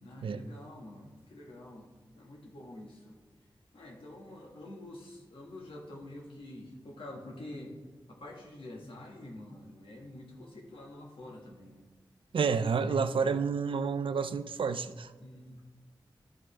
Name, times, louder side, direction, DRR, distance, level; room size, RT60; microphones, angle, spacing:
voice 1, 0.0-1.9 2.1-3.2 3.7-7.7 8.1-11.8 12.6-13.0 15.2-15.6, left 1 dB, 85° left, -1 dB, 1.8 m, -47 dB
voice 2, 12.3-15.1, right 5 dB, 75° right, 11 dB, 0.5 m, -29 dB
12.5 x 5.3 x 3.3 m, 1.4 s
wide cardioid pair, 80°, 9 cm